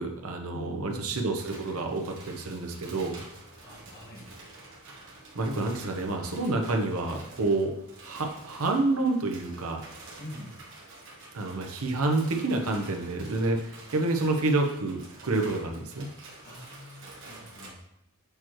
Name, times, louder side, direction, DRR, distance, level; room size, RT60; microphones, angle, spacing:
voice 1, 0.0-3.2 5.3-7.7 8.0-9.8 11.3-13.6 13.9-16.1, right 2 dB, 75° right, 3 dB, 0.8 m, -28 dB
voice 2, 0.5-1.1 3.6-4.3 10.2-10.5 16.4-17.8, left 1 dB, 45° left, -3 dB, 1.6 m, -44 dB
sound 1, 1.3-17.7, right 2 dB, 60° right, 1.5 m, -48 dB
6.8 x 4.5 x 3.1 m, 0.77 s
head